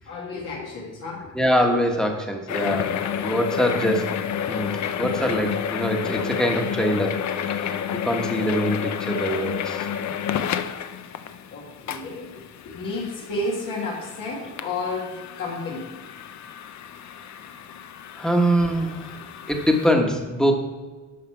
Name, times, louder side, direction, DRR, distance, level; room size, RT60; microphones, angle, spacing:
voice 1, 0.0-1.3 11.5-16.0, left 2 dB, 80° left, -4 dB, 2.1 m, -32 dB
voice 2, 1.4-4.1 4.5-7.7 8.0-9.9 18.2-19.1 19.5-20.5, equal, ahead, 3 dB, 1.1 m, -23 dB
sound 1, 2.5-19.9, left 9 dB, 60° left, 0.6 m, -30 dB
12.5 x 4.9 x 4.5 m, 1.3 s
cardioid pair, 145°, 32 cm